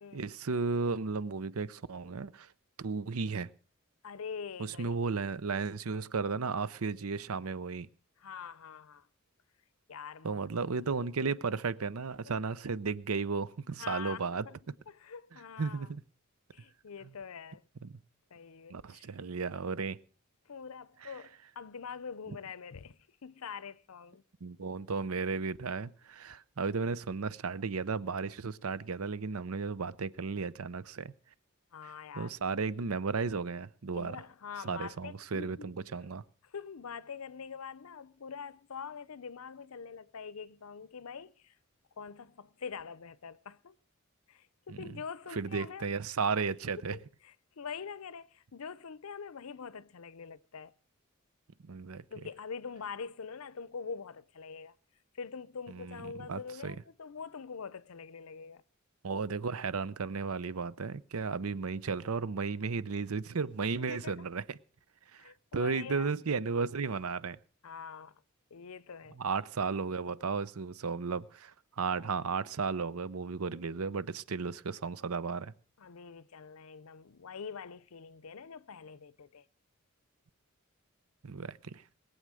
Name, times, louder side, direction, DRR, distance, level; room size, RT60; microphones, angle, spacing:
voice 1, 0.1-2.5 2.8-3.5 4.6-7.9 10.2-14.5 15.6-16.0 17.8-17.9 18.7-20.0 21.0-21.1 24.4-31.1 32.2-34.2 34.6-36.2 44.7-44.8 45.3-47.0 51.7-52.0 55.7-56.0 56.3-56.8 59.0-64.6 65.1-67.4 69.2-75.5 81.2-81.8, right 4 dB, 85° right, 0.7 m, -34 dB
voice 2, 4.0-5.0 8.2-9.1 9.9-10.4 12.3-12.4 13.8-14.6 14.9-15.9 16.5-17.6 18.3-19.1 20.5-24.2 31.7-32.4 33.9-35.8 36.4-41.6 42.0-43.8 44.3-45.9 46.9-50.7 52.1-54.7 55.1-58.6 63.8-64.3 65.2-66.2 67.6-68.2 68.5-69.2 75.8-79.4, left 6 dB, 85° left, 0.6 m, -44 dB
20.5 x 8.0 x 6.3 m
head